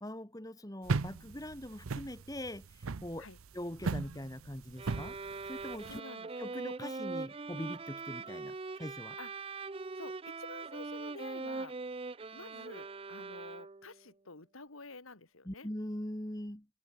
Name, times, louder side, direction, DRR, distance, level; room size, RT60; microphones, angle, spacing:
voice 1, 0.0-3.3 3.5-5.2 5.5-6.0 6.4-9.2 15.5-16.7, left 1 dB, 15° left, 1.8 m, -42 dB
sound 1, 0.9-6.0, right 4 dB, 85° right, 0.7 m, -37 dB
sound 2, 4.8-14.0, right 3 dB, 25° right, 0.5 m, -42 dB
voice 2, 5.8-6.3 9.2-9.5 10.0-11.8 12.3-15.7, left 3 dB, 80° left, 2.4 m, -50 dB
head